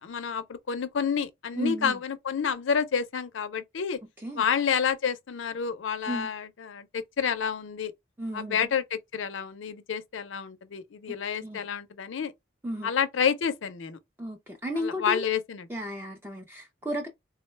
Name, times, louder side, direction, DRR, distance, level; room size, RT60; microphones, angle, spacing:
voice 1, 0.0-4.0 4.3-7.9 8.3-12.3 12.8-14.0 14.8-15.7, left 7 dB, 80° left, 0.5 m, -29 dB
voice 2, 1.6-2.0 4.2-4.4 6.1-6.3 8.2-8.7 11.4-11.6 12.6-12.9 14.2-15.2 15.7-17.1, equal, 10° right, 0.4 m, -33 dB
3.6 x 2.1 x 3.1 m
head